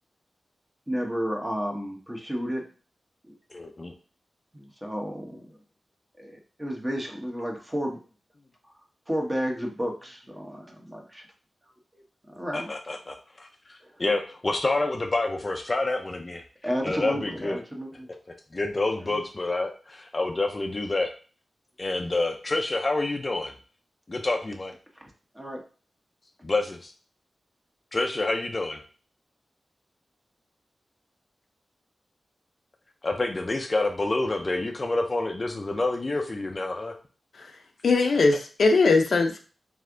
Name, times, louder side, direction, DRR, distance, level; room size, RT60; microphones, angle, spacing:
voice 1, 0.9-2.6 3.3-3.4 4.5-5.6 6.2-8.0 9.1-11.2 11.9-12.7 16.6-18.1 19.1-19.2 25.3-25.6, equal, 15° right, 1 dB, 1.0 m, -32 dB
voice 2, 3.5-3.9 12.5-16.4 16.8-17.6 18.3-21.1 21.8-23.5 24.1-24.7 26.4-26.9 27.9-28.8 33.0-36.9 38.3-38.4, left 2 dB, 35° left, 3 dB, 0.5 m, -28 dB
voice 3, 37.8-39.4, left 3 dB, 75° left, 4 dB, 0.6 m, -20 dB
3.4 x 3.3 x 3.7 m, 0.37 s
wide cardioid pair, 95°, 0 cm